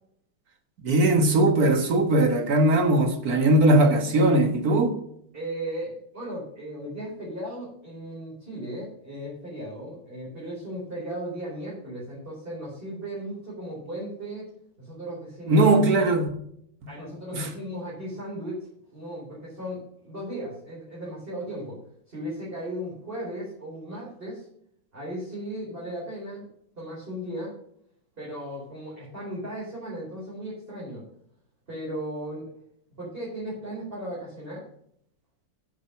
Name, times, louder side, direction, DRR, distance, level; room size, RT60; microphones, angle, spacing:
voice 1, 0.8-4.9 15.5-16.3 16.8-16.9 17.3-17.5, right 2 dB, 50° right, 1.9 m, -20 dB
voice 2, 5.3-14.5 14.8-15.8 16.9-21.8 22.1-24.5 24.9-26.5 26.8-27.5 28.2-31.0 31.7-32.5 32.9-34.7, right 1 dB, 30° right, 4.4 m, -36 dB
10.0 x 7.6 x 5.7 m
omnidirectional pair, 2.0 m